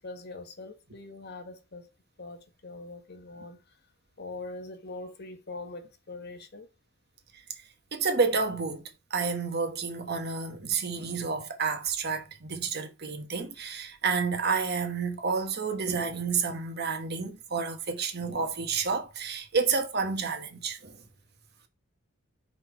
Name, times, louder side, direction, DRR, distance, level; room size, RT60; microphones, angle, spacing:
voice 1, 0.0-1.9 2.2-3.6 4.2-6.7, left 3 dB, 50° left, 1.1 m, -42 dB
voice 2, 7.9-8.8 9.1-21.0, right 5 dB, 50° right, 1.2 m, -30 dB
5.2 x 4.3 x 4.5 m
head